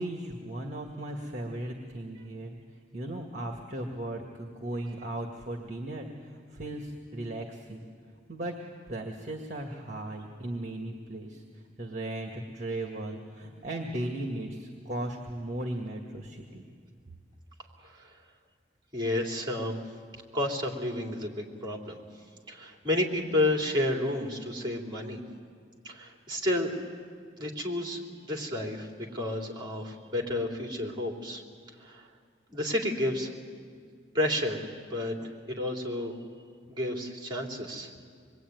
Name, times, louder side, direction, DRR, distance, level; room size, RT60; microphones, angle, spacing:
voice 1, 0.0-2.6 2.9-7.9 8.3-8.5 8.9-11.4 11.8-16.6, right 1 dB, 40° right, 2 dB, 1.9 m, -36 dB
voice 2, 18.9-19.8 20.3-22.0 22.5-25.2 25.8-26.8 27.4-28.9 29.1-31.4 31.8-32.0 32.5-33.3 34.1-34.6 34.9-35.1 35.5-36.1 36.7-37.9, left 1 dB, 25° right, 1 dB, 3.5 m, -31 dB
26.0 x 22.0 x 9.4 m, 2.1 s
head